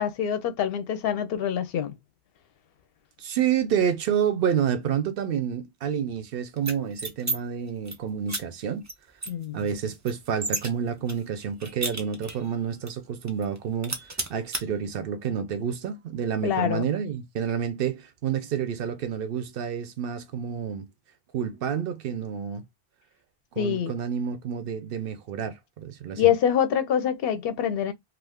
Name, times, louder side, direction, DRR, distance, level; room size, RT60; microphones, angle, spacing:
voice 1, 0.0-1.9 9.3-9.6 16.4-16.9 23.6-23.9 26.2-27.9, left 9 dB, 70° left, 0.7 m, -25 dB
voice 2, 3.2-8.9 9.5-14.0 14.3-20.9 21.3-22.6 23.6-26.3, right 8 dB, 65° right, 0.7 m, -29 dB
sound 1, 6.6-7.4 7.7-8.0 8.3-8.4 8.9-9.0 9.2-10.7 11.1-12.5 12.9-13.0 13.3-13.6 13.8-14.6, right 2 dB, 25° right, 0.4 m, -32 dB
2.5 x 2.4 x 3.4 m
omnidirectional pair, 1.1 m